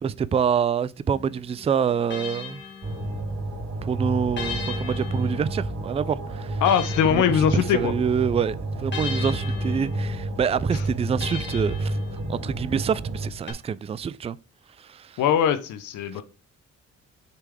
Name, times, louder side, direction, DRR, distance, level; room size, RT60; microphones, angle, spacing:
voice 1, 0.0-2.6 3.8-6.6 7.1-12.0 12.3-14.4, right 7 dB, 20° right, 0.3 m, -26 dB
sound 1, 1.1-3.6 4.4-8.1 8.9-12.7 13.5-13.6, left 6 dB, 35° left, 1.7 m, -39 dB
sound 2, 2.8-13.3, right 1 dB, 50° right, 2.2 m, -30 dB
voice 2, 6.6-7.9 10.7-10.8 15.2-16.2, left 8 dB, 80° left, 0.7 m, -21 dB
6.8 x 3.5 x 4.8 m
cardioid pair, 90°, 30 cm